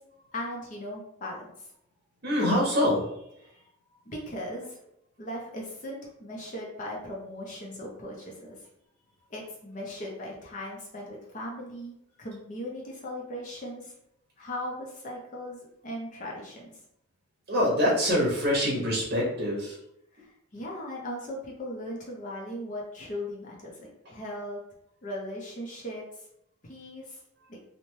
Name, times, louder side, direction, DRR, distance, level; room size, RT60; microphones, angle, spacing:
voice 1, 0.3-1.7 3.5-3.6 4.1-4.8 5.2-8.6 9.3-13.9 14.4-16.8 20.1-24.6 25.0-26.2 26.6-27.2, left 1 dB, 40° left, -2 dB, 0.5 m, -38 dB
voice 2, 2.2-3.1 17.5-19.8, equal, 45° right, -5 dB, 0.7 m, -25 dB
2.7 x 2.1 x 3.0 m, 0.79 s
head